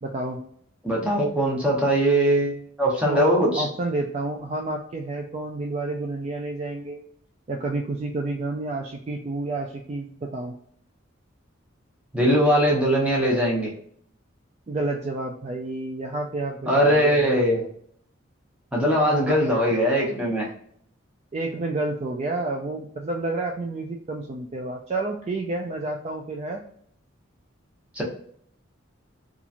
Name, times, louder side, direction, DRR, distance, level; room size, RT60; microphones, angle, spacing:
voice 1, 0.0-0.4 3.0-7.0 7.5-10.6 14.7-17.4 19.1-19.4 21.3-26.6, right 2 dB, 35° right, 1 dB, 0.3 m, -30 dB
voice 2, 0.8-3.7 12.1-13.7 16.7-17.6 18.7-20.5 27.9-28.0, equal, 5° right, -4 dB, 0.9 m, -21 dB
2.9 x 2.4 x 2.5 m, 0.62 s
head